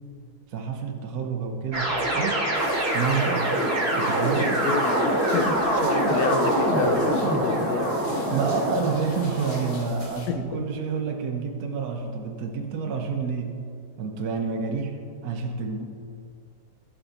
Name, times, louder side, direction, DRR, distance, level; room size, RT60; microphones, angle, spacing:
voice 1, 0.5-2.5 2.9-3.6 3.9-4.6 8.3-13.6 14.0-15.8, right 5 dB, 65° right, 3 dB, 1.1 m, -29 dB
sound 1, 1.7-9.8, right 1 dB, 35° right, 1.7 m, -24 dB
sound 2, 2.5-10.3, left 2 dB, 30° left, 1.4 m, -45 dB
voice 2, 4.4-8.0 10.3-10.6, left 7 dB, 70° left, 9 dB, 1.1 m, -30 dB
15.0 x 6.0 x 4.1 m, 2.4 s
omnidirectional pair, 1.9 m